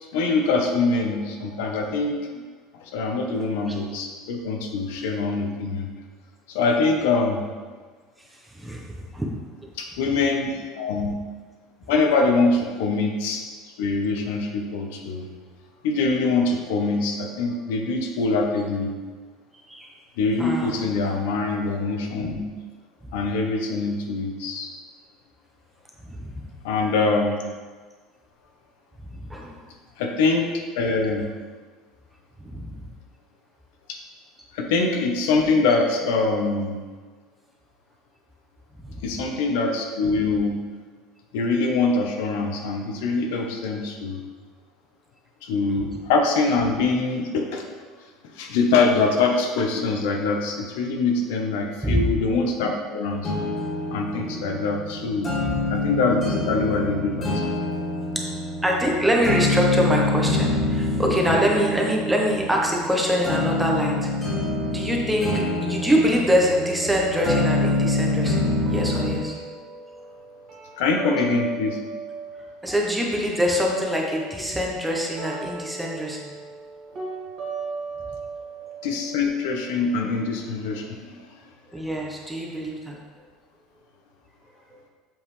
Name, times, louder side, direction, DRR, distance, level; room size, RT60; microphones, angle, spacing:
voice 1, 0.1-2.4 2.8-5.9 6.5-7.5 9.8-11.2 11.9-13.4 13.8-15.3 15.8-19.0 20.2-22.4 23.1-24.7 26.6-27.4 30.0-31.3 34.5-36.8 39.0-40.6 41.3-44.2 45.4-47.7 48.3-53.3 53.9-55.3 55.7-57.4 70.8-71.8 78.8-81.2, left 3 dB, 85° left, 2 dB, 0.9 m, -24 dB
voice 2, 3.3-3.8 8.5-9.3 19.7-19.9 20.4-20.7 23.0-23.1 26.0-26.5 29.1-29.6 32.4-32.8 38.9-39.0 51.8-52.1 55.4-55.5 58.6-64.1 64.7-69.3 72.6-76.3 81.7-83.0, equal, 5° right, -1 dB, 0.9 m, -24 dB
sound 1, 53.2-69.2, left 2 dB, 25° left, 2.1 m, -26 dB
sound 2, 66.4-72.4 72.7-80.4, right 4 dB, 35° right, 1.7 m, -37 dB
7.2 x 5.5 x 3.3 m, 1.5 s
cardioid pair, 155°, 0 cm